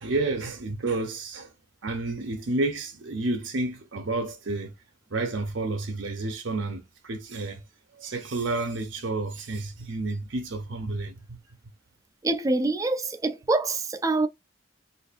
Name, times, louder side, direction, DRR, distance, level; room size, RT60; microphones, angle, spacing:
voice 1, 0.0-1.5 1.8-4.7 5.1-7.6 7.9-11.4, right 2 dB, 70° right, 0.7 m, -30 dB
voice 2, 12.2-14.3, right 2 dB, 15° right, 0.3 m, -25 dB
4.1 x 2.5 x 2.4 m
head